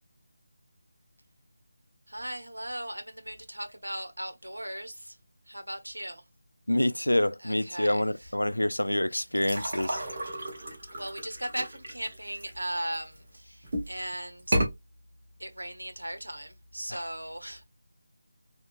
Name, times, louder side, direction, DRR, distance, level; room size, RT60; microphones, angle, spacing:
voice 1, 2.1-5.2 5.5-6.2 7.4-8.3 9.1-9.2 10.9-14.6 15.4-17.7, right 1 dB, 90° right, 1.0 m, -38 dB
voice 2, 6.7-10.0 16.9-17.0, left 1 dB, 90° left, 0.3 m, -27 dB
sound 1, 9.4-13.2 13.6-14.0 14.4-14.7, right 1 dB, 45° right, 1.4 m, -32 dB
3.6 x 2.8 x 2.4 m
figure-of-eight pair, 160°, 0 cm